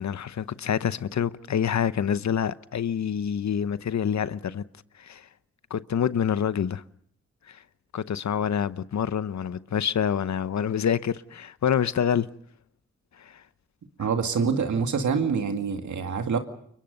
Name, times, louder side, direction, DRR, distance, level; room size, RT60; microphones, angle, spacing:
voice 1, 0.0-4.6 5.0-5.3 5.7-6.8 7.5-7.6 7.9-12.3 13.2-13.4, left 8 dB, 70° left, 0.9 m, -27 dB
voice 2, 14.0-16.4, right 5 dB, 85° right, 2.3 m, -26 dB
29.0 x 23.5 x 5.4 m
cardioid pair, 50°, 29 cm